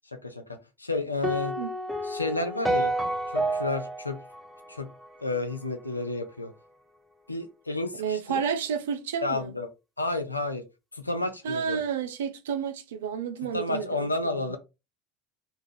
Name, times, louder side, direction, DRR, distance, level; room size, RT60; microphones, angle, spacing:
voice 1, 0.1-1.5 2.0-2.9 3.3-4.2 4.7-4.9 5.2-6.5 7.3-8.4 9.2-9.7 10.0-10.6 10.9-11.8 13.5-14.6, left 2 dB, 85° left, 0.4 m, -31 dB
sound 1, 1.2-5.5, right 1 dB, ahead, 0.6 m, -30 dB
voice 2, 8.0-9.6 11.4-14.1 14.3-14.5, right 7 dB, 65° right, 0.4 m, -31 dB
2.4 x 2.3 x 3.2 m
figure-of-eight pair, 70°, 0 cm